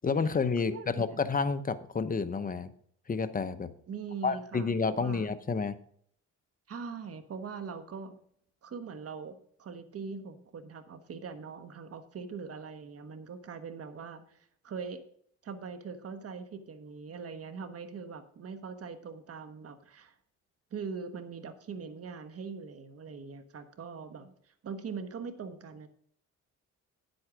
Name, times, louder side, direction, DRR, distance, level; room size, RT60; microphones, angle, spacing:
voice 1, 0.0-2.7 3.1-3.7 4.2-5.8, left 4 dB, 30° left, 11 dB, 0.8 m, -30 dB
voice 2, 0.6-1.2 3.9-5.2 6.7-8.2 8.6-15.0 15.4-20.1 20.7-24.3 24.6-25.9, right 5 dB, 50° right, 9 dB, 1.3 m, -42 dB
10.0 x 8.0 x 5.0 m, 0.62 s
cardioid pair, 90°, 30 cm